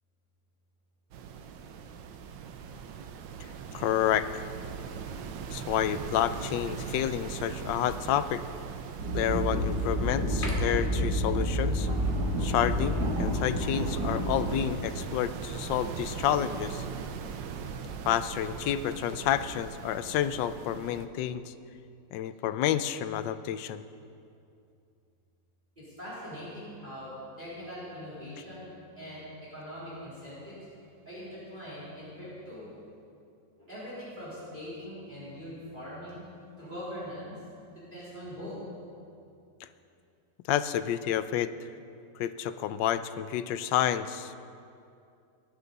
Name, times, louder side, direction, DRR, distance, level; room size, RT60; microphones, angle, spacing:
sound 1, 1.1-21.1, right 6 dB, 80° right, 1.5 m, -41 dB
voice 1, 3.7-4.4 5.5-8.4 9.1-11.9 12.4-16.8 18.1-21.5 22.1-23.8 40.5-41.5 42.2-44.4, left 11 dB, 80° left, 12 dB, 1.3 m, -29 dB
sound 2, 7.3-7.8 8.3-8.4 9.0-9.8 10.3-11.1 14.5-15.9 17.3-17.8, left 1 dB, 30° left, 2.0 m, -41 dB
sound 3, 9.0-14.7, equal, 60° right, 2.1 m, -29 dB
voice 2, 25.8-30.6 31.1-32.7 33.6-36.3 36.6-37.4 37.7-38.6, equal, 25° right, -10 dB, 3.9 m, -42 dB
20.0 x 10.5 x 4.1 m, 2.5 s
omnidirectional pair, 2.0 m